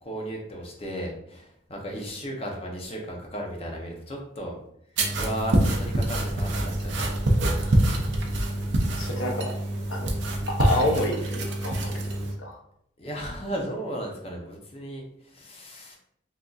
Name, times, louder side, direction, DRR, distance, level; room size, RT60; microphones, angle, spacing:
voice 1, 0.0-4.6 5.2-7.5 13.0-16.0, equal, 30° left, 0 dB, 0.6 m, -35 dB
sound 1, 5.0-12.3, right 1 dB, 65° right, 0.6 m, -25 dB
voice 2, 9.0-9.5 9.9-10.1 10.5-11.9 12.4-12.6, left 1 dB, 90° left, 1 dB, 0.7 m, -28 dB
3.7 x 2.7 x 2.4 m, 0.72 s
head